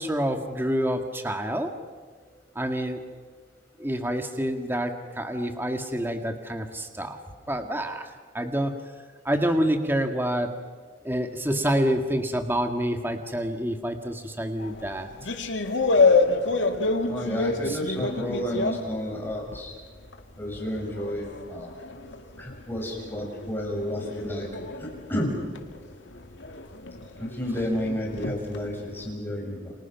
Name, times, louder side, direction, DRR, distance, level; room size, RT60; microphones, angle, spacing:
voice 1, 0.0-1.8 2.6-3.0 3.8-7.2 7.5-8.7 9.3-10.5 11.0-15.1 17.6-17.8 27.9-28.0, equal, 10° right, 5 dB, 1.7 m, -27 dB
sound 1, 14.6-19.8 20.1-29.0, left 3 dB, 75° left, 2.1 m, -28 dB
voice 2, 17.1-19.7 20.4-21.7 22.4-24.5 24.8-25.3 27.2-29.7, equal, 10° left, -1 dB, 6.5 m, -31 dB
29.5 x 27.0 x 6.0 m, 1.5 s
head